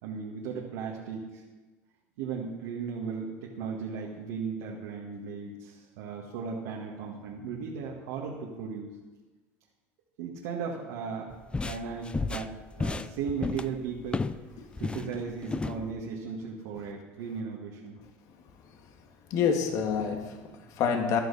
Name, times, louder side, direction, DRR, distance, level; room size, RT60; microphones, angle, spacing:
voice 1, 0.0-1.4 2.2-8.9 10.2-11.3 11.6-14.3 14.8-18.0, right 5 dB, 80° right, -2 dB, 1.8 m, -36 dB
sound 1, 11.3-14.4 14.7-15.8, left 3 dB, 15° left, 0.5 m, -33 dB
voice 2, 19.3-21.2, left 6 dB, 60° left, 4 dB, 1.8 m, -27 dB
14.0 x 12.0 x 4.2 m, 1.2 s
supercardioid pair, 95°, 7 cm